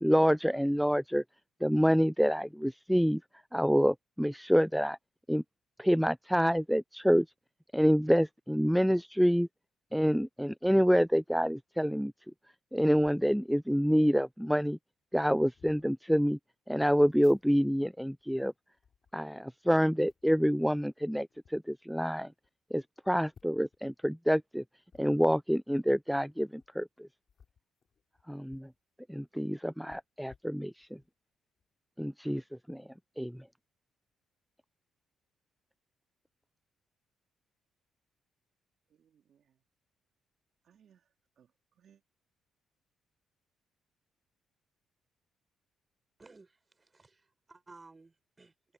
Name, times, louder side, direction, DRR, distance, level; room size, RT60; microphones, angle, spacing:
voice 1, 0.0-1.2 1.6-5.0 5.3-5.4 5.8-7.3 7.7-9.5 9.9-12.1 12.7-14.8 15.1-16.4 16.7-18.5 19.1-22.3 22.7-24.6 25.0-27.1 28.3-28.7 29.1-31.0 32.0-32.9 33.2-33.4, equal, ahead, 0.4 m, -27 dB
sound 1, 13.0-13.3 14.1-14.2 14.4-14.7 15.3-15.9 16.8-17.9 18.2-19.6 20.1-20.4 21.2-21.6 22.1-22.2 22.4-22.5 23.3-23.8 24.9-25.0 26.5-26.7 27.2-28.8 29.1-29.2 29.9-31.1 31.6-31.7, left 7 dB, 50° left, 5.8 m, -63 dB
voice 2, 38.9-39.6 40.6-42.0, right 8 dB, 60° right, 2.7 m, -66 dB
voice 3, 46.2-48.7, right 3 dB, 25° right, 6.7 m, -57 dB
cardioid pair, 90°, 0 cm